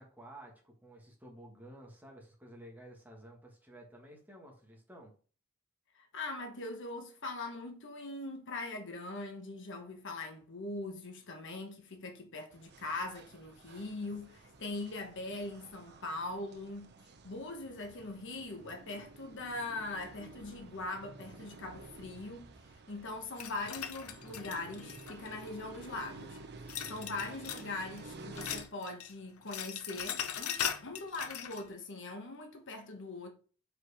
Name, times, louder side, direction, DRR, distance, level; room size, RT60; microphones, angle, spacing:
voice 1, 0.0-5.1, right 1 dB, 10° right, 1.6 m, -53 dB
voice 2, 5.9-16.9 17.2-22.5 22.9-26.4 26.9-33.3, left 2 dB, 60° left, 1.2 m, -41 dB
sound 1, 12.5-28.6, right 3 dB, 50° right, 0.8 m, -52 dB
sound 2, 23.4-25.5 26.7-27.7 28.0-29.1 29.4-31.6, left 9 dB, 80° left, 0.7 m, -39 dB
4.9 x 4.6 x 4.9 m
head